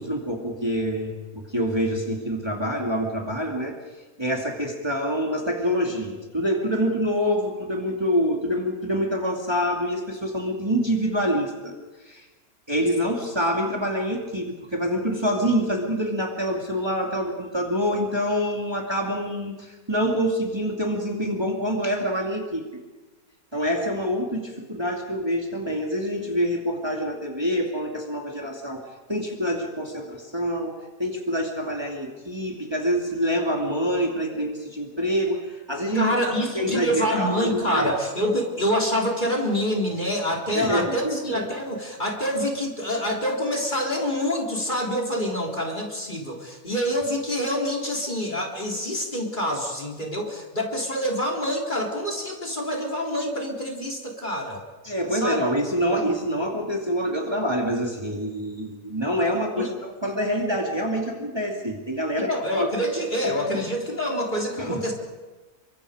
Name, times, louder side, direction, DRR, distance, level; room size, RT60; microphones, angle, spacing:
voice 1, 0.0-3.8 4.2-11.8 12.0-12.2 12.7-22.6 23.5-28.8 29.1-30.7 31.0-37.9 40.5-41.4 54.8-62.7 63.2-63.6 64.6-64.8, equal, 20° right, 0 dB, 2.7 m, -26 dB
voice 2, 35.9-54.6 55.1-55.4 55.9-56.1 59.6-59.7 62.2-64.9, equal, 35° left, -1 dB, 3.8 m, -26 dB
30.0 x 24.0 x 5.0 m, 1.2 s
omnidirectional pair, 1.5 m